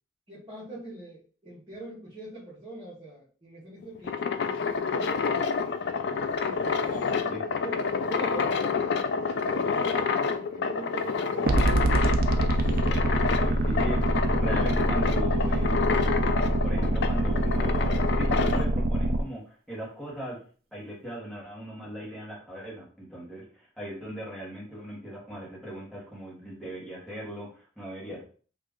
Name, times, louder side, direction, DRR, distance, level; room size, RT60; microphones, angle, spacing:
voice 1, 0.3-5.7 6.4-12.0 12.7-13.3, right 2 dB, 30° right, -9 dB, 1.1 m, -43 dB
sound 1, 3.8-18.7, left 5 dB, 70° left, 0.3 m, -28 dB
sound 2, 11.5-19.2, right 1 dB, 50° right, 0.4 m, -25 dB
voice 2, 13.4-16.0 16.6-20.4 20.7-28.2, right 1 dB, 5° left, -6 dB, 1.2 m, -38 dB
2.9 x 2.4 x 3.5 m, 0.41 s
head